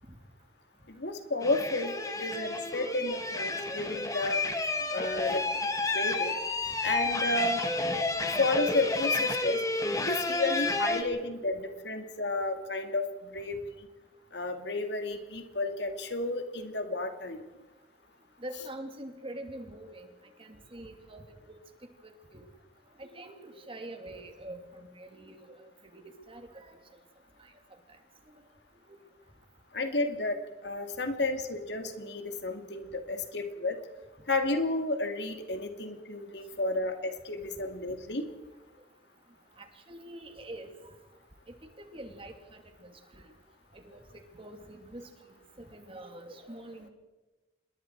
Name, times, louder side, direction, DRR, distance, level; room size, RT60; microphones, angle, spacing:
voice 1, 0.9-4.4 4.9-5.4 5.9-6.3 6.8-7.6 8.4-9.6 10.0-13.6 14.3-17.4 29.7-33.8 34.3-38.3, left 2 dB, 65° left, 6 dB, 2.4 m, -32 dB
sound 1, 1.4-11.0, left 2 dB, 20° left, 1.8 m, -31 dB
voice 2, 1.7-2.3 2.7-2.9 4.1-4.6 10.3-10.6 18.4-20.1 20.4-21.6 22.0-22.4 23.0-25.4 25.9-26.8 36.7-36.8 39.6-40.9 41.5-43.2 43.7-45.1 45.6-46.9, right 1 dB, 30° right, 5 dB, 2.6 m, -45 dB
27.0 x 21.5 x 4.7 m, 1.2 s
head